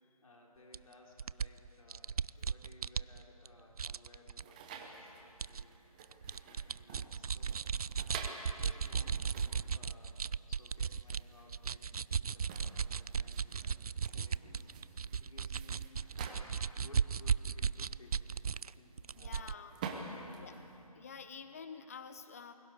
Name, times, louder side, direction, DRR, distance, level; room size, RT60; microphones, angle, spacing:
voice 1, 0.2-5.7 6.2-7.6 8.1-10.2 10.5-13.7 14.0-14.7 15.1-18.3 18.8-19.5 20.0-20.6, left 2 dB, 60° left, -1 dB, 4.0 m, -60 dB
sound 1, 0.7-0.8 1.2-3.5 3.8-4.4 5.4-5.6 6.0-11.2 11.5-18.7 19.0-19.6, right 6 dB, 70° right, 0.4 m, -36 dB
sound 2, 4.4-20.9, right 4 dB, 15° right, 0.9 m, -50 dB
voice 2, 19.1-19.7 20.4-20.5 20.9-22.5, left 6 dB, 25° left, 10 dB, 0.7 m, -48 dB
29.5 x 22.0 x 4.8 m, 3.0 s
figure-of-eight pair, 160°, 20 cm